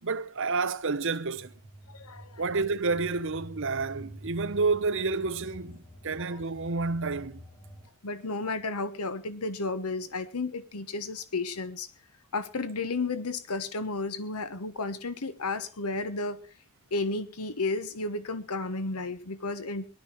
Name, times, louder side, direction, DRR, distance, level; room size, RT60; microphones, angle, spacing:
voice 1, 0.0-1.5 2.4-7.4, right 4 dB, 60° right, 0.9 m, -29 dB
sound 1, 1.3-7.9, right 1 dB, 20° left, 2.9 m, -48 dB
voice 2, 1.9-2.4 6.3-6.4 8.0-11.9 12.3-16.4 16.9-19.9, left 3 dB, 85° left, 1.2 m, -32 dB
19.0 x 12.0 x 4.5 m
head